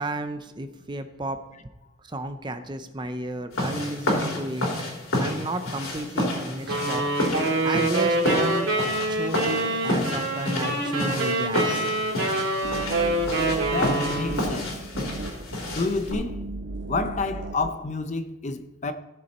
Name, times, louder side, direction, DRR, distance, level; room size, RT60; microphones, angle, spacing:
voice 1, 0.0-1.4 2.1-4.7 5.2-7.0 7.6-8.7 9.1-11.9, right 1 dB, 20° right, 0.6 m, -32 dB
sound 1, 3.5-16.1, left 1 dB, 85° left, 3.4 m, -30 dB
sound 2, 6.7-14.6, right 2 dB, 75° right, 2.9 m, -26 dB
sound 3, 12.6-17.7, right 2 dB, 55° right, 0.8 m, -35 dB
voice 2, 13.7-14.8 15.7-16.5 16.9-18.9, left 3 dB, 35° left, 0.6 m, -29 dB
16.0 x 6.9 x 4.3 m
head